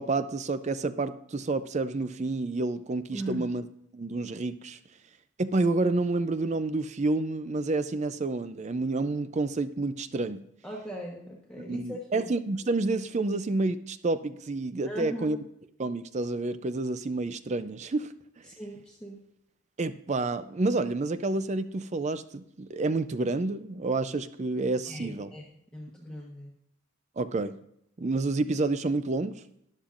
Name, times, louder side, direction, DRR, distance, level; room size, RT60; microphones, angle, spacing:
voice 1, 0.0-3.6 3.9-4.8 5.4-10.5 11.6-15.4 15.8-18.1 19.8-25.3 27.2-27.6 28.0-29.4, right 2 dB, 35° right, 12 dB, 0.4 m, -29 dB
voice 2, 3.1-3.5 10.6-12.3 14.9-15.3 18.6-19.2 24.9-25.5 25.7-26.5, equal, 5° left, -4 dB, 1.1 m, -39 dB
13.0 x 10.0 x 2.5 m, 0.75 s
head